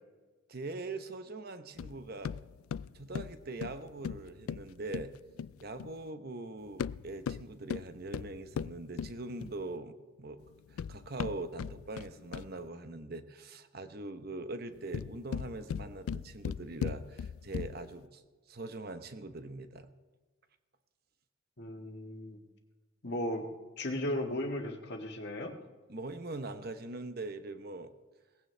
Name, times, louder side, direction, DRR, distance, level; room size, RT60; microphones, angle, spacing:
voice 1, 0.5-2.3 2.9-5.1 5.6-10.4 10.7-18.2 18.5-19.9 25.9-27.9, right 2 dB, 45° right, 9 dB, 0.9 m, -42 dB
sound 1, 1.8-6.0 6.7-9.7 10.5-12.7 14.7-18.0, left 7 dB, 85° left, 0.3 m, -39 dB
voice 2, 21.6-22.4 23.0-23.5 23.8-25.5, left 1 dB, 50° left, 3 dB, 1.7 m, -36 dB
18.5 x 16.0 x 3.4 m, 1.3 s
head